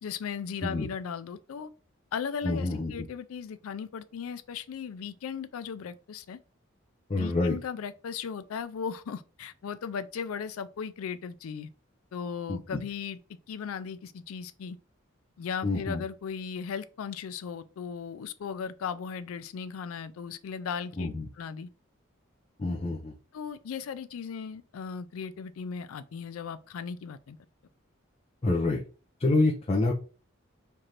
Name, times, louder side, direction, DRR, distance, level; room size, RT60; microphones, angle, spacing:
voice 1, 0.0-1.7 2.1-6.4 7.1-11.7 12.1-13.2 13.5-14.8 15.4-21.7 23.3-27.4, left 6 dB, 90° left, 0.4 m, -37 dB
voice 2, 2.4-3.1 7.1-7.6 12.5-12.8 15.6-16.0 21.0-21.2 22.6-23.1 28.4-28.8 29.2-29.9, left 2 dB, 30° left, 0.5 m, -27 dB
3.3 x 2.5 x 4.2 m
head